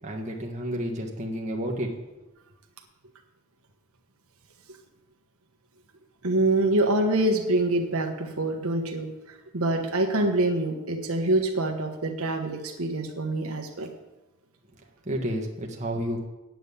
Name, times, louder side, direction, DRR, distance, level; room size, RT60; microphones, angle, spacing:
voice 1, 0.0-1.9 15.0-16.3, equal, 30° right, 0 dB, 1.5 m, -31 dB
voice 2, 6.2-13.9, right 2 dB, 75° right, 3 dB, 1.3 m, -25 dB
9.3 x 7.7 x 8.4 m, 1.0 s
head